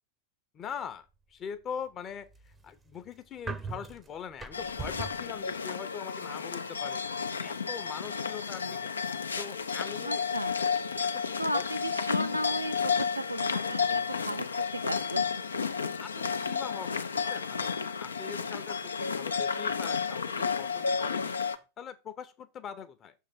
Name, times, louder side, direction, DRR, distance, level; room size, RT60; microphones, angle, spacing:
voice 1, 0.5-2.3 2.6-7.0 7.4-8.9 9.4-10.2 11.0-11.3 11.5-11.6 12.3-12.4 16.0-17.7 18.0-21.4 21.8-23.1, left 8 dB, 30° left, 0.8 m, -42 dB
sound 1, 2.1-5.3, right 4 dB, 10° right, 0.6 m, -41 dB
sound 2, 4.5-21.6, left 6 dB, 75° left, 0.5 m, -32 dB
voice 2, 10.0-10.6 11.4-15.3, right 1 dB, 85° right, 0.5 m, -35 dB
6.5 x 3.6 x 5.7 m
figure-of-eight pair, 90°, 0 cm